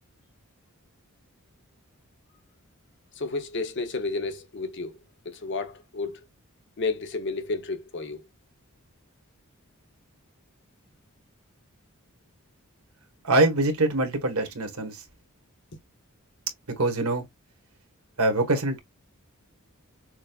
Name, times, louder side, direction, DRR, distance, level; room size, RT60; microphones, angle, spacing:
voice 1, 3.1-5.0 5.2-6.3 6.8-8.2, left 3 dB, 55° left, 0.9 m, -31 dB
voice 2, 13.2-15.0 16.8-17.2 18.2-18.8, right 2 dB, 80° right, 1.4 m, -24 dB
6.2 x 2.3 x 2.3 m
head